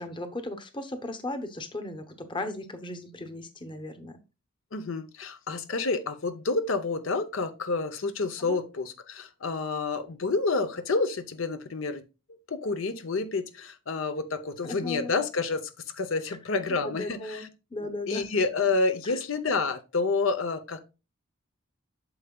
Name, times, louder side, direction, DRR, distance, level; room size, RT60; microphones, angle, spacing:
voice 1, 0.0-4.2 8.5-8.6 14.6-15.1 16.8-18.2 19.0-19.2, left 2 dB, 25° left, 8 dB, 0.9 m, -36 dB
voice 2, 4.7-12.0 12.5-17.5 17.8-20.8, left 3 dB, 70° left, 9 dB, 0.7 m, -29 dB
8.6 x 6.7 x 2.3 m, 0.28 s
head